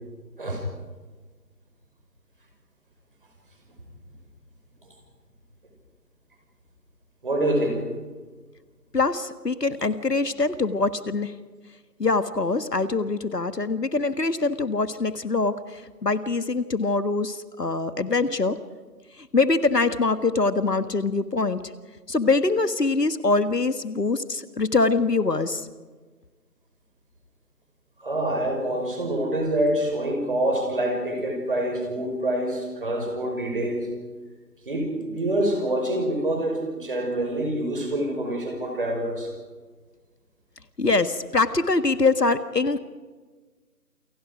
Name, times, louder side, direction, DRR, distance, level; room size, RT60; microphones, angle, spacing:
voice 1, 7.2-7.8 28.0-33.9 34.7-39.3, right 1 dB, 30° right, 3 dB, 5.4 m, -26 dB
voice 2, 8.9-11.3 12.0-18.6 19.3-21.6 22.1-25.7 40.8-42.8, left 3 dB, 75° left, 12 dB, 1.6 m, -23 dB
28.5 x 25.0 x 5.1 m, 1.4 s
figure-of-eight pair, 170°, 49 cm